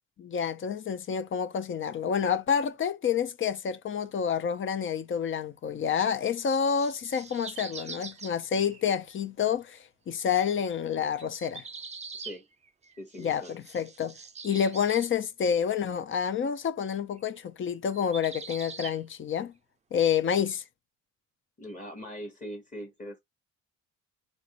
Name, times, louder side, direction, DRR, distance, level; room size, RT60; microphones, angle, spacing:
voice 1, 0.2-11.7 13.2-14.1 14.4-19.5 19.9-20.6, left 7 dB, 40° left, 0.6 m, -28 dB
sound 1, 6.5-9.1 11.2-15.1 17.2-17.4 17.9-19.0 20.4-20.5, right 5 dB, 25° right, 0.5 m, -43 dB
voice 2, 13.0-13.6 21.6-23.2, equal, 25° left, 1.1 m, -41 dB
4.0 x 2.5 x 2.9 m
cardioid pair, 90°, 30 cm